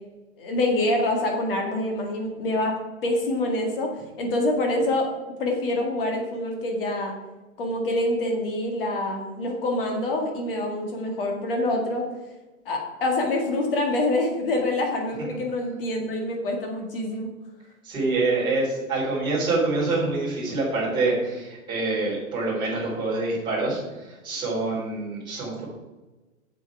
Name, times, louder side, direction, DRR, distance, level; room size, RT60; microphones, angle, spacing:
voice 1, 0.4-5.1 5.4-7.1 7.6-12.1 12.7-17.3, left 1 dB, 40° left, 2 dB, 2.1 m, -26 dB
voice 2, 17.8-25.6, right 3 dB, 10° right, -9 dB, 3.4 m, -26 dB
7.9 x 7.5 x 4.8 m, 1.2 s
hypercardioid pair, 175°, 42 cm